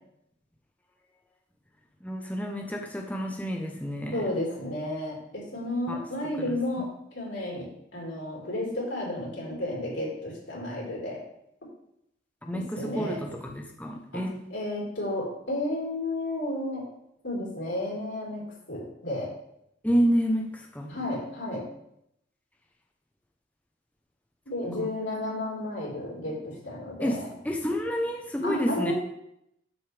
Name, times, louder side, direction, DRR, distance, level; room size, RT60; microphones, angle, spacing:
voice 1, 2.0-4.2 5.9-6.0 6.4-6.6 12.4-14.4 19.8-20.9 24.8-24.9 27.0-28.9, equal, 10° left, 2 dB, 0.7 m, -29 dB
voice 2, 4.1-7.7 7.9-11.2 12.5-13.2 14.1-14.2 14.5-16.8 17.2-18.4 18.7-19.3 20.9-21.6 24.5-27.3 28.4-28.9, left 1 dB, 85° left, -4 dB, 4.2 m, -32 dB
12.0 x 6.8 x 3.4 m, 0.76 s
head